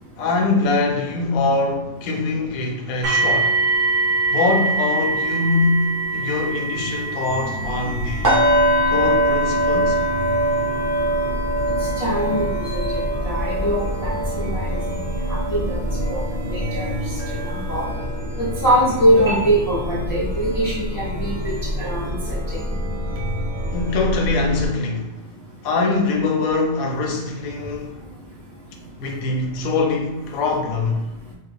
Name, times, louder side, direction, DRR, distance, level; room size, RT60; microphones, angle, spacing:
voice 1, 0.2-3.6 4.3-8.4 8.9-10.0 23.7-25.2 25.6-28.0 29.0-31.1, left 3 dB, 75° left, 1.0 m, -23 dB
sound 1, 3.0-15.9 16.8-16.9 17.4-17.5, right 3 dB, 45° right, 0.6 m, -26 dB
Chime, 7.2-24.7, equal, 85° right, 1.2 m, -28 dB
sound 2, 8.2-18.2 18.5-18.8 19.2-19.4, right 1 dB, 15° right, 0.8 m, -23 dB
voice 2, 12.0-14.8 15.3-15.8 16.1-16.2 16.5-16.9 17.4-17.9 18.4-21.5 21.8-22.6, right 1 dB, 30° left, 0.4 m, -22 dB
3.2 x 2.1 x 3.4 m
omnidirectional pair, 1.5 m